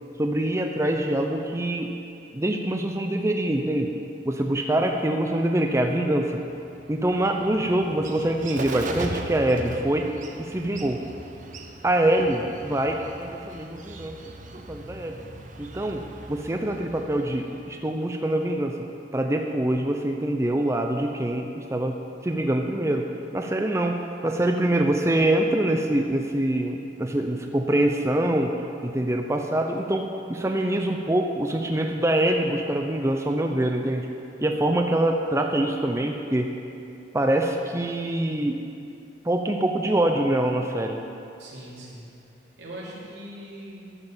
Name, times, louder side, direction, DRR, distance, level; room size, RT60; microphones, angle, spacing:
voice 1, 0.2-1.9 2.3-3.9 4.3-6.4 6.9-10.0 10.4-11.0 11.8-14.2 14.7-15.2 15.6-16.0 16.3-18.7 19.1-21.9 22.2-23.1 23.3-28.5 28.8-34.1 34.4-36.5 37.1-38.6 39.2-41.0, right 1 dB, 15° right, 3 dB, 0.6 m, -24 dB
Bird, 6.5-18.0, right 2 dB, 45° right, 0.9 m, -39 dB
voice 2, 41.4-42.2 42.6-43.8, right 1 dB, 90° right, -6 dB, 3.3 m, -40 dB
12.0 x 7.7 x 7.3 m, 2.6 s
head